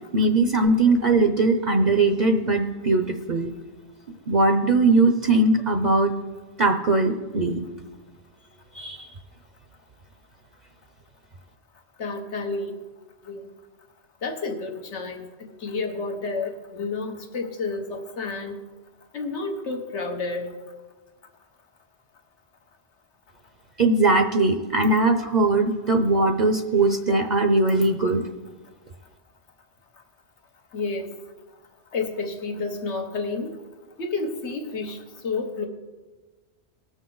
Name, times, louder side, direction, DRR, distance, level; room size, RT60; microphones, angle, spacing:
voice 1, 0.1-3.5 4.3-6.1 6.6-7.6 8.7-9.1 23.8-28.2, right 2 dB, 50° right, 5 dB, 0.7 m, -20 dB
voice 2, 12.0-12.7 13.2-13.5 14.2-15.3 15.6-18.6 19.1-20.5 30.7-31.1 31.9-33.6 34.0-35.0 35.2-35.7, left 3 dB, 80° left, 5 dB, 1.4 m, -30 dB
19.0 x 6.4 x 3.9 m, 1.3 s
omnidirectional pair, 1.1 m